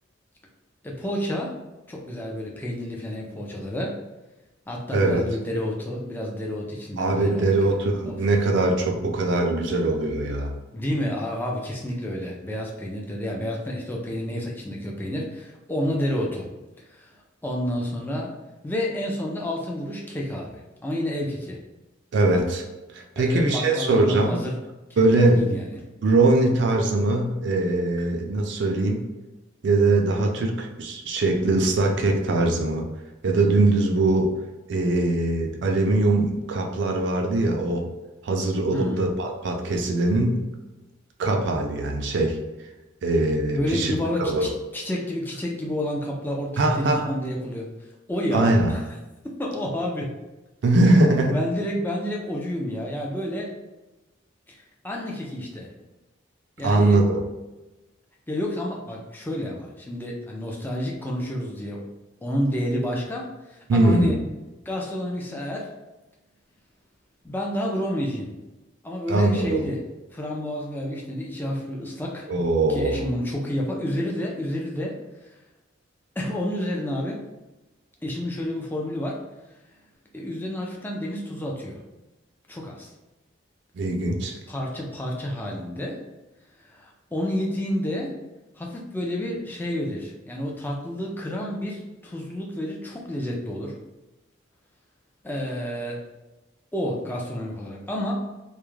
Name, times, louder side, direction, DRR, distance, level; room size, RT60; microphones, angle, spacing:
voice 1, 0.8-1.5 1.9-3.9 4.7-7.8 8.1-8.2 10.7-16.5 16.9-17.1 17.4-18.3 18.6-21.6 23.2-24.6 24.9-25.6 38.7-39.0 43.5-47.7 48.1-48.8 49.4-50.1 51.3-53.5 54.8-55.7 56.6-57.0 58.3-61.9 62.2-64.2 64.7-65.7 67.2-68.3 68.8-69.8 70.1-72.3 72.7-74.9 76.2-77.2 78.0-79.2 80.1-81.8 82.5-82.9 84.5-86.0 86.7-88.2 88.6-93.8 95.2-96.0 96.7-98.1, left 1 dB, 10° left, -2 dB, 0.4 m, -30 dB
voice 2, 4.9-5.2 7.0-10.5 22.1-22.7 22.9-24.4 25.0-25.6 26.0-29.0 29.6-32.8 33.2-34.3 34.7-37.8 38.2-40.5 41.2-42.4 43.0-43.9 44.2-44.5 46.6-47.1 48.3-48.7 50.6-51.4 56.6-57.2 63.7-64.2 69.1-69.6 72.3-73.0 83.7-84.4, right 2 dB, 60° right, 2 dB, 0.4 m, -21 dB
2.3 x 2.0 x 3.1 m, 1.1 s
head